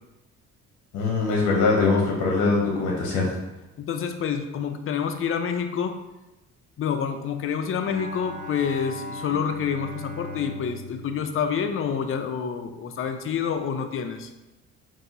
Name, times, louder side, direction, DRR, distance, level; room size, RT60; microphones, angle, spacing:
voice 1, 0.9-3.3, left 3 dB, 80° left, -1 dB, 0.8 m, -22 dB
voice 2, 3.8-5.9 6.8-14.3, left 7 dB, 45° left, 7 dB, 0.5 m, -28 dB
Bowed string instrument, 7.8-12.3, left 2 dB, 25° right, 0.8 m, -38 dB
5.4 x 2.7 x 2.7 m, 0.99 s
cardioid pair, 90°, 30 cm